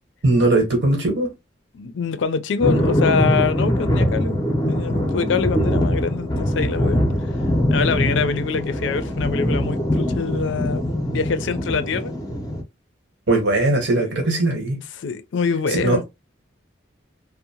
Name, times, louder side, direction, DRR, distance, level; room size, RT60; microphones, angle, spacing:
voice 1, 0.2-1.3 13.3-14.8 15.7-16.0, right 2 dB, 75° right, 1.1 m, -19 dB
voice 2, 1.7-4.4 4.7-7.0 7.7-12.1 14.0-14.3 15.0-16.0, left 5 dB, 80° left, 0.4 m, -25 dB
sound 1, 2.6-12.6, equal, 20° left, 0.5 m, -22 dB
2.6 x 2.0 x 2.8 m
head